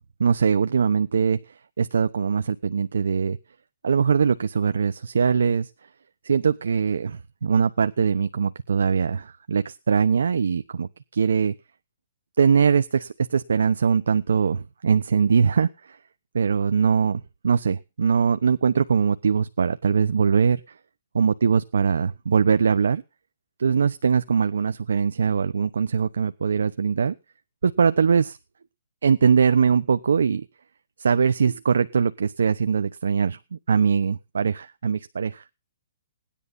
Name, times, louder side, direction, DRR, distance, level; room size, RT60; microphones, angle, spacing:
voice 1, 0.2-1.4 1.8-3.4 3.8-5.7 6.2-11.5 12.4-15.7 16.3-20.6 21.1-23.0 23.6-27.1 27.6-28.4 29.0-30.4 31.0-33.4 33.7-35.4, right 6 dB, 85° right, 12 dB, 0.9 m, -21 dB
18.0 x 10.5 x 5.4 m, 0.30 s
hypercardioid pair, 175°, 0 cm